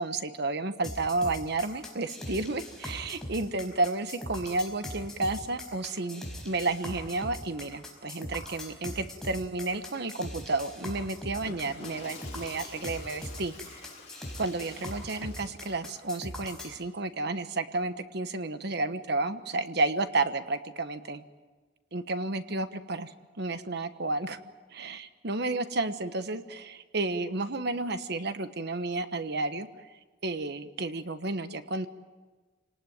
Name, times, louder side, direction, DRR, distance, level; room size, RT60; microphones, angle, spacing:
voice 1, 0.0-13.9 14.4-21.2 21.9-24.4 24.7-29.9 30.2-31.9, right 2 dB, 55° right, 10 dB, 1.3 m, -32 dB
sound 1, 0.8-16.8, left 1 dB, 5° left, 5.0 m, -41 dB
Water / Toilet flush, 11.3-15.8, left 3 dB, 35° left, 6.4 m, -49 dB
27.5 x 19.0 x 9.4 m, 1.3 s
head